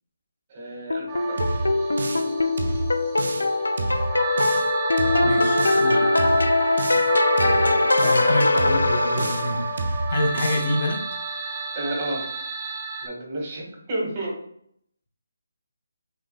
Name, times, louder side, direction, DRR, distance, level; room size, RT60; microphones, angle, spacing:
voice 1, 0.5-1.4 7.4-9.4 11.7-12.4 13.0-14.4, right 1 dB, 30° right, -2 dB, 1.8 m, -31 dB
sound 1, 0.9-9.8, left 2 dB, 85° left, 0.4 m, -22 dB
sound 2, 1.1-13.1, right 4 dB, 15° right, 0.6 m, -31 dB
sound 3, 1.4-2.3 2.6-3.5 3.8-4.7 5.0-5.9 6.2-7.1 7.4-8.3 8.6-9.5 9.8-10.7, right 2 dB, 60° right, 0.7 m, -29 dB
voice 2, 5.2-6.0 8.0-9.8 10.1-11.0, left 1 dB, 55° left, 2 dB, 0.9 m, -27 dB
6.1 x 3.4 x 2.3 m, 0.66 s
figure-of-eight pair, 155°, 0 cm